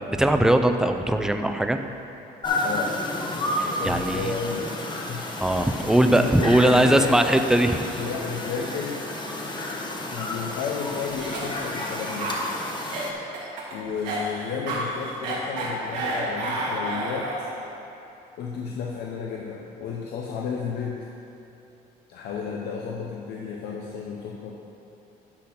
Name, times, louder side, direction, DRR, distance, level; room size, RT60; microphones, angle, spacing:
voice 1, 0.1-1.8 3.8-4.3 5.4-7.9, right 1 dB, 5° right, 6 dB, 0.4 m, -20 dB
sound 1, 2.4-13.1, left 1 dB, 25° left, 1.0 m, -31 dB
voice 2, 2.6-3.0 3.4-4.7 5.1-5.5 6.1-7.4 8.0-9.1 10.1-12.3 13.7-17.3 18.4-21.1 22.1-24.5, left 5 dB, 75° left, -2 dB, 0.8 m, -32 dB
Cough, 11.0-17.6, right 1 dB, 90° right, 1.8 m, -31 dB
10.0 x 4.2 x 5.8 m, 2.9 s
cardioid pair, 110°, 17 cm